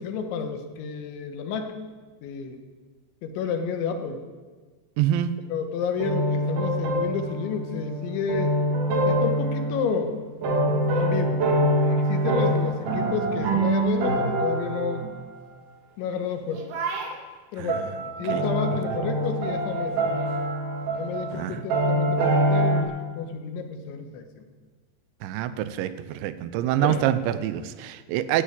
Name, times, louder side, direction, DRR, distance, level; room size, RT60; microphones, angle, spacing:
voice 1, 0.0-1.8 2.2-2.6 3.2-4.2 5.5-8.6 9.1-10.2 10.9-11.4 11.8-15.1 16.0-16.6 17.5-17.9 18.2-20.0 20.9-24.5 26.8-27.0, left 6 dB, 85° left, 6 dB, 3.5 m, -30 dB
voice 2, 5.0-5.4 17.6-18.0 18.3-18.4 18.7-18.8 21.3-21.6 25.2-28.4, right 11 dB, 90° right, 13 dB, 3.0 m, -26 dB
sound 1, 6.0-10.0 10.4-15.2 16.6-17.1 17.7-22.8, right 1 dB, 55° right, 2.8 m, -25 dB
13.5 x 9.3 x 8.8 m, 1.4 s
omnidirectional pair, 5.2 m